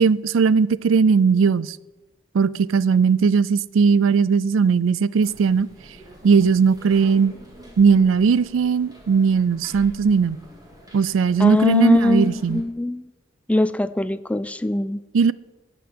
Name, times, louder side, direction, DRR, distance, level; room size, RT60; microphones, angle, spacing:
voice 1, 0.0-1.8 2.3-5.7 6.2-7.3 7.8-10.4 10.9-12.6 15.1-15.3, right 5 dB, 80° right, 0.4 m, -18 dB
sound 1, 5.2-12.6, equal, 20° right, 2.6 m, -46 dB
voice 2, 11.4-13.1 13.5-15.0, left 1 dB, 5° left, 0.4 m, -21 dB
12.0 x 6.3 x 9.4 m
head